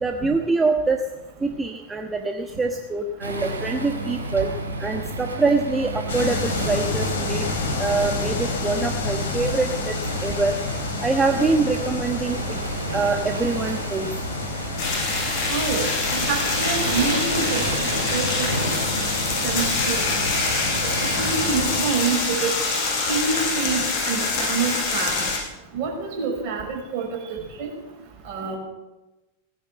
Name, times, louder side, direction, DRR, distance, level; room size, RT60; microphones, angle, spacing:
voice 1, 0.0-1.0 1.4-4.5 4.8-7.5 7.8-9.9 10.2-10.6 11.0-12.6 12.9-14.1, right 3 dB, 15° right, 4 dB, 1.3 m, -24 dB
Waves surf, 3.2-21.9, right 2 dB, 75° right, 3.3 m, -31 dB
sound 1, 6.1-21.8, left 4 dB, 60° left, 3.3 m, -30 dB
sound 2, 14.8-25.4, left 3 dB, 45° left, 6.9 m, -25 dB
voice 2, 15.5-17.7 18.1-18.7 19.4-20.1 20.8-22.5 23.1-25.3 25.7-27.7 28.2-28.6, right 5 dB, 45° right, 1 dB, 5.6 m, -27 dB
18.5 x 10.0 x 7.8 m, 1.0 s
figure-of-eight pair, 90°, 0 cm